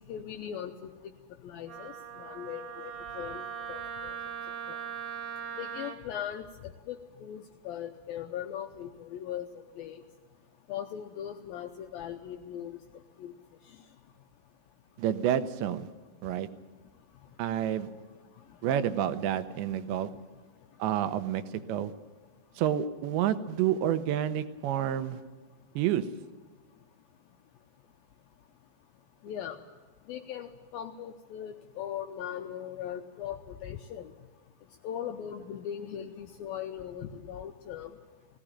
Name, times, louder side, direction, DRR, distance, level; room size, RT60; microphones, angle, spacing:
voice 1, 0.1-0.9 1.4-4.1 4.7-4.8 5.6-6.4 6.9-9.5 9.8-10.0 10.7-12.8 13.2-13.3 29.2-29.6 30.1-34.1 34.8-37.9, left 9 dB, 80° left, 5 dB, 2.1 m, -39 dB
Wind instrument woodwind instrument, 1.7-6.0, right 7 dB, 60° right, 2.9 m, -40 dB
voice 2, 15.0-15.9 16.2-16.5 17.4-17.9 18.6-20.1 20.8-21.4 21.7-21.9 22.6-25.2 25.8-26.1, right 10 dB, 85° right, 10 dB, 3.1 m, -29 dB
18.5 x 17.0 x 8.8 m, 1.3 s
omnidirectional pair, 5.1 m